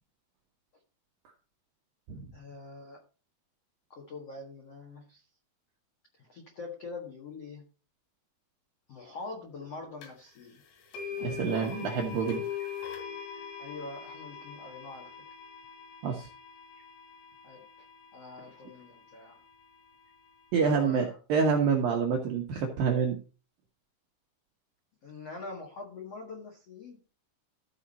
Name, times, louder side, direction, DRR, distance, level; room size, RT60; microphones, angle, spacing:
voice 1, 2.3-3.0 3.9-5.2 6.2-7.7 8.9-10.6 11.1-11.6 13.6-15.2 17.4-17.8 18.1-19.4 20.6-21.2 25.0-27.0, left 3 dB, 65° left, 0 dB, 1.5 m, -44 dB
sound 1, 10.0-10.1 10.9-19.0, left 7 dB, 90° left, 4.9 m, -42 dB
voice 2, 11.2-12.4 16.0-16.3 20.5-23.2, right 5 dB, 75° right, 1 dB, 2.1 m, -27 dB
14.5 x 5.0 x 4.2 m, 0.34 s
omnidirectional pair, 5.7 m